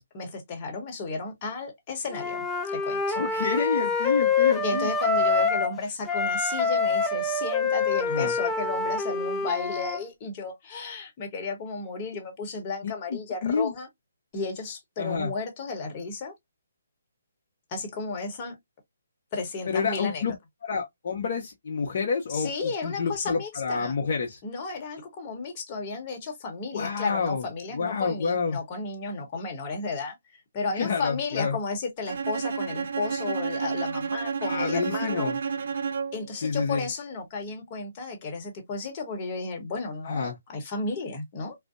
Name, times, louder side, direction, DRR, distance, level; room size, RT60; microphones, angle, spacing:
voice 1, 0.1-3.2 4.6-13.9 14.3-16.3 17.7-18.5 19.3-20.2 22.3-23.9 24.4-30.2 30.5-35.3 36.1-41.6, left 4 dB, 30° left, 0.9 m, -33 dB
Wind instrument woodwind instrument, 2.1-5.8 6.0-10.0, left 4 dB, 5° left, 0.4 m, -26 dB
voice 2, 3.1-4.9 8.1-8.3 12.8-13.7 15.0-15.3 19.7-20.3 20.6-24.4 26.7-27.5 27.7-28.6 30.7-31.6 34.5-35.4 36.4-36.9 40.0-40.4, left 5 dB, 55° left, 0.6 m, -28 dB
Bowed string instrument, 32.1-36.3, right 6 dB, 65° right, 0.4 m, -30 dB
2.5 x 2.1 x 2.4 m
hypercardioid pair, 155°, 0 cm